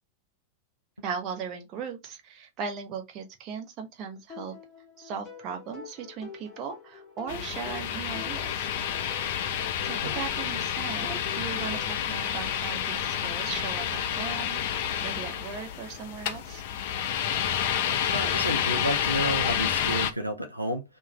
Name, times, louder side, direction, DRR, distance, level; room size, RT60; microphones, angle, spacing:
voice 1, 1.0-4.6 5.0-8.7 9.8-14.6 15.0-16.6, right 6 dB, 35° right, 0.6 m, -38 dB
sound 1, 4.3-12.0, left 5 dB, 35° left, 0.9 m, -46 dB
sound 2, 7.3-20.1, left 9 dB, 50° left, 0.3 m, -29 dB
voice 2, 18.1-20.8, right 1 dB, 90° right, 0.4 m, -30 dB
2.3 x 2.2 x 3.0 m
figure-of-eight pair, 90°, 0 cm